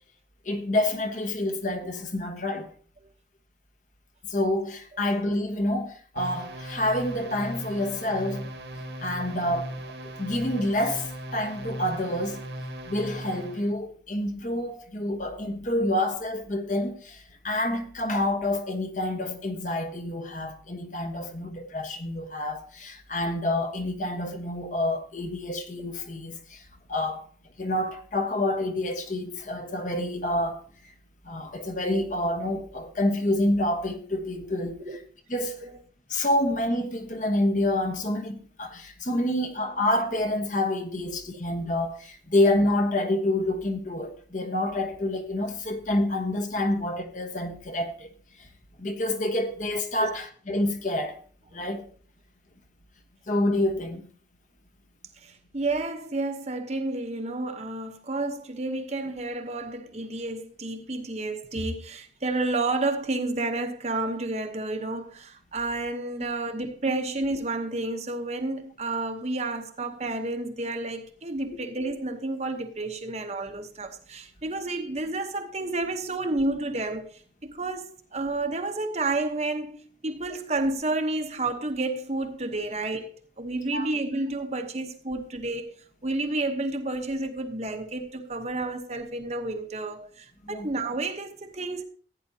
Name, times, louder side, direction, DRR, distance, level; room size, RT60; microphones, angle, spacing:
voice 1, 0.4-2.7 4.3-8.5 9.0-12.4 12.8-27.2 27.6-30.6 31.2-34.8 35.3-35.6 36.1-48.1 48.4-48.5 48.8-51.2 51.5-51.8 53.3-54.1 83.7-83.9 90.4-90.7, left 1 dB, 40° left, 1.3 m, -28 dB
sound 1, 6.2-13.7, right 1 dB, 70° right, 1.7 m, -38 dB
voice 2, 55.2-83.1 83.4-85.8 86.0-91.8, right 2 dB, 35° right, 1.0 m, -30 dB
15.5 x 9.5 x 2.8 m
head